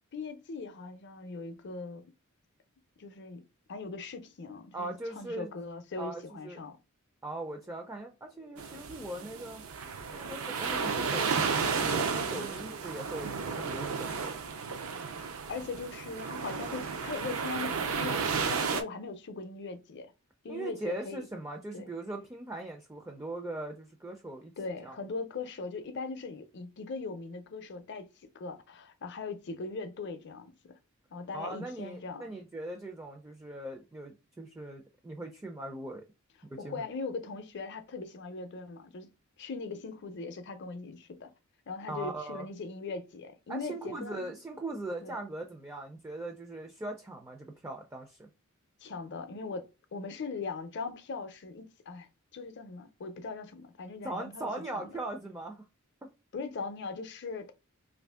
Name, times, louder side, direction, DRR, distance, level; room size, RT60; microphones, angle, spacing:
voice 1, 0.1-2.0 3.0-3.4 3.7-6.8 12.3-12.7 15.5-20.1 20.4-21.3 21.7-21.9 24.6-28.1 28.3-30.5 31.1-32.4 36.6-39.1 39.4-41.3 41.7-44.3 45.0-45.2 48.8-52.1 52.3-54.5 54.7-54.9 56.3-57.5, left 4 dB, 55° left, 0.5 m, -40 dB
voice 2, 4.7-5.5 6.0-6.6 7.2-9.6 10.1-14.4 20.5-24.5 24.8-24.9 31.3-36.1 36.5-36.8 41.9-42.5 43.5-48.3 54.0-55.6, right 2 dB, 15° right, 0.4 m, -40 dB
sound 1, 8.6-18.8, right 5 dB, 75° right, 0.5 m, -33 dB
2.7 x 2.6 x 3.4 m
head